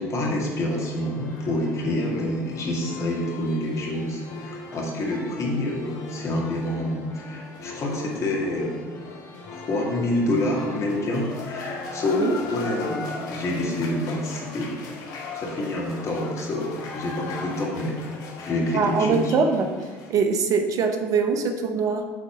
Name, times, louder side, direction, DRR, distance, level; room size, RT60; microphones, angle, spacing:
voice 1, 0.0-8.8 9.5-14.8 15.3-18.0 18.4-19.3, left 1 dB, 40° left, -2 dB, 2.2 m, -27 dB
sound 1, 0.7-20.1, left 3 dB, 55° left, 1.3 m, -39 dB
voice 2, 18.7-19.8 20.1-22.1, right 5 dB, 50° right, 6 dB, 0.9 m, -23 dB
7.7 x 4.0 x 6.2 m, 1.4 s
hypercardioid pair, 70°, 8 cm